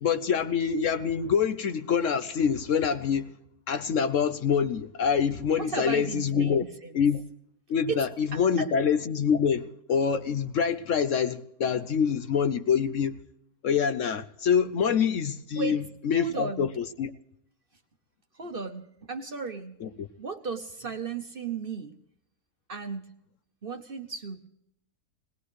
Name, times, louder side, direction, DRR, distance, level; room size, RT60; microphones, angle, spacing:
voice 1, 0.0-3.3 3.7-6.6 6.9-7.2 7.7-13.2 13.6-15.8 16.0-17.1 19.8-20.1, left 7 dB, 60° left, 0.9 m, -26 dB
voice 2, 5.6-6.9 7.9-8.0 8.3-8.7 15.6-15.8 16.2-16.8 18.3-19.8 20.2-22.0 22.7-23.1 23.6-24.5, right 4 dB, 40° right, 1.0 m, -35 dB
19.5 x 19.5 x 3.2 m
omnidirectional pair, 1.6 m